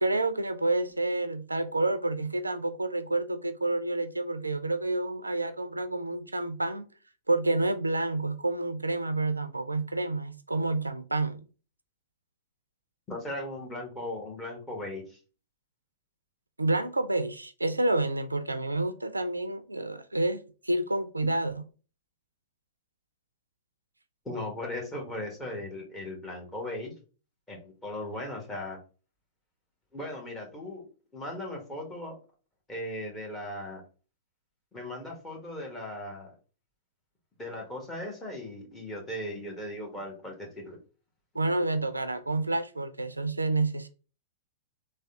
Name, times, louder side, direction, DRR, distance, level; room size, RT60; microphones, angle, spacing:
voice 1, 0.0-6.8 7.3-11.4 16.6-21.6 41.3-43.9, right 2 dB, 85° right, 0.4 m, -29 dB
voice 2, 13.1-15.2 24.2-26.9 27.5-28.8 29.9-30.8 31.1-32.2 32.7-33.8 34.7-36.3 37.4-40.8, left 1 dB, 15° left, 1.4 m, -37 dB
3.4 x 2.2 x 3.5 m
figure-of-eight pair, 100°, 0 cm